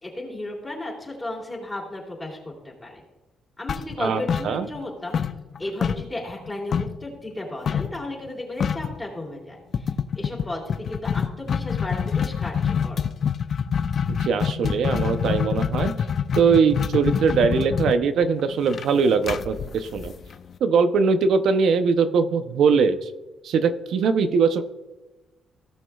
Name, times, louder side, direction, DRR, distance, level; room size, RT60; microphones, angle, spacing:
voice 1, 0.0-3.0 3.6-5.2 5.6-13.1, left 1 dB, 20° left, -3 dB, 2.8 m, -34 dB
sound 1, 3.7-4.9 5.1-7.0 7.7-8.0 8.3-8.4 8.6-9.0 9.7-20.5, left 7 dB, 55° left, 0.5 m, -26 dB
voice 2, 4.0-4.7 14.1-15.9 16.4-20.1 20.6-23.1 23.4-24.6, right 5 dB, 70° right, 10 dB, 0.7 m, -21 dB
17.5 x 6.1 x 2.4 m, 1.1 s
cardioid pair, 90°, 0 cm